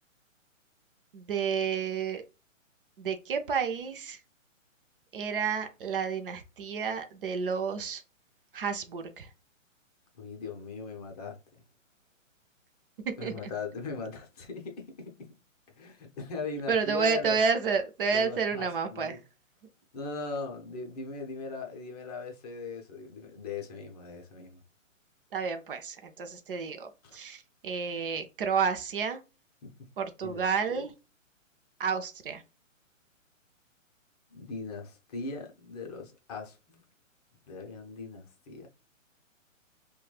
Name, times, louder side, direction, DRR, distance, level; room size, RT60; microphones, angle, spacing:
voice 1, 1.1-2.2 3.0-4.2 5.1-8.0 8.5-9.3 13.0-13.5 16.7-19.2 25.3-29.2 30.0-30.9 31.8-32.4, right 6 dB, 45° right, 0.5 m, -30 dB
voice 2, 10.2-11.6 13.2-15.3 15.8-17.4 18.1-19.2 19.9-24.6 27.0-27.2 29.6-29.7 30.2-30.8 34.3-36.8 37.5-38.7, left 4 dB, 30° left, 0.7 m, -39 dB
3.0 x 2.3 x 2.3 m
hypercardioid pair, 140°, 40 cm